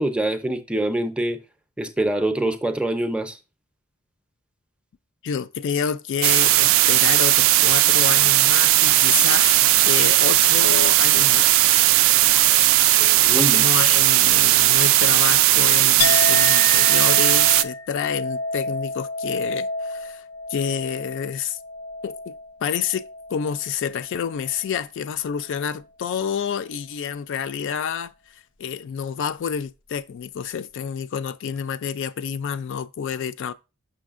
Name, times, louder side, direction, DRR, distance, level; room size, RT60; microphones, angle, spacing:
voice 1, 0.0-1.4 1.8-3.4 13.2-13.7, right 1 dB, 5° right, 0.5 m, -24 dB
voice 2, 5.2-11.5 11.9-12.0 13.0-13.3 13.5-20.2 20.5-21.6 22.0-22.3 22.6-33.5, left 7 dB, 60° left, 0.3 m, -29 dB
sound 1, 6.2-17.6, right 15 dB, 65° right, 0.3 m, -17 dB
Chink clink, 16.0-23.7 24.0-24.7, left 3 dB, 85° left, 0.7 m, -30 dB
6.2 x 6.2 x 2.4 m
head